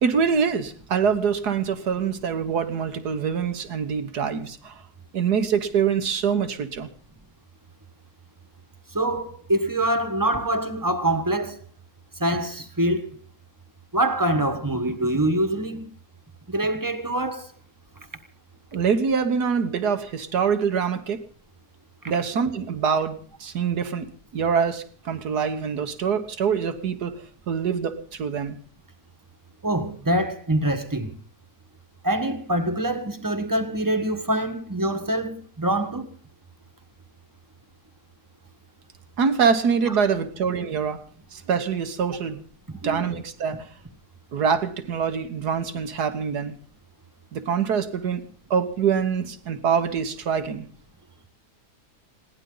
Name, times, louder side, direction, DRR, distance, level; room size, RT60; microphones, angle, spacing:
voice 1, 0.0-4.8 5.1-6.9 18.7-21.2 22.1-24.1 24.3-27.1 27.5-28.6 39.2-41.0 41.3-42.4 42.8-43.7 44.3-46.6 47.3-48.2 48.5-50.7, right 6 dB, 75° right, 1.9 m, -24 dB
voice 2, 8.9-11.6 12.2-13.2 13.9-15.9 16.5-17.5 22.0-22.1 29.6-31.2 32.0-36.1 39.9-40.0 42.7-43.0, right 1 dB, 15° right, 1.4 m, -25 dB
21.5 x 17.0 x 3.9 m
omnidirectional pair, 1.7 m